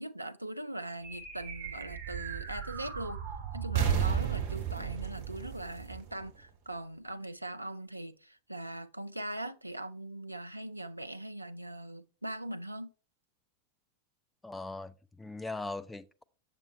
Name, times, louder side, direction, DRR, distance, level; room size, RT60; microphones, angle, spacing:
voice 1, 0.0-3.2 3.5-12.9, right 1 dB, 85° right, 0.4 m, -41 dB
sound 1, 1.0-6.7, right 8 dB, 40° right, 2.3 m, -34 dB
voice 2, 14.4-16.2, left 2 dB, 5° left, 0.4 m, -40 dB
7.2 x 6.7 x 3.0 m
figure-of-eight pair, 90°, 0 cm